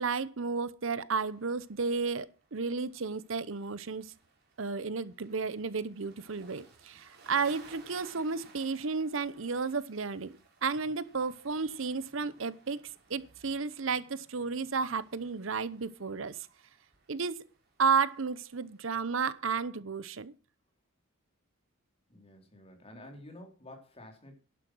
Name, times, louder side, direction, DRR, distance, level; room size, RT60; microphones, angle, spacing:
voice 1, 0.0-4.1 4.6-12.8 13.1-16.4 17.1-17.4 17.8-20.3, right 5 dB, 70° right, 0.8 m, -32 dB
sound 1, 1.1-19.4, right 4 dB, 50° right, 4.6 m, -60 dB
voice 2, 22.1-24.3, left 1 dB, 30° left, 3.8 m, -50 dB
11.5 x 11.0 x 6.2 m
head